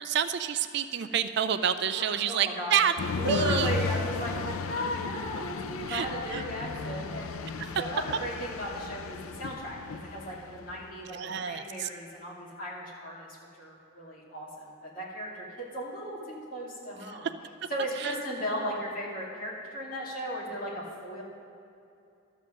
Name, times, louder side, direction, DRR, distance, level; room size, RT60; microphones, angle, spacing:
voice 1, 0.0-3.7 5.9-6.1 6.3-6.4 7.6-7.8 11.1-11.9 17.1-17.3 18.0-18.1, right 8 dB, 55° right, 10 dB, 0.4 m, -29 dB
voice 2, 2.0-2.8 3.2-17.3 17.7-21.2, equal, 40° left, -5 dB, 2.4 m, -36 dB
sound 1, 3.0-11.0, left 4 dB, 90° left, 0.5 m, -35 dB
12.5 x 7.4 x 6.3 m, 2.6 s
head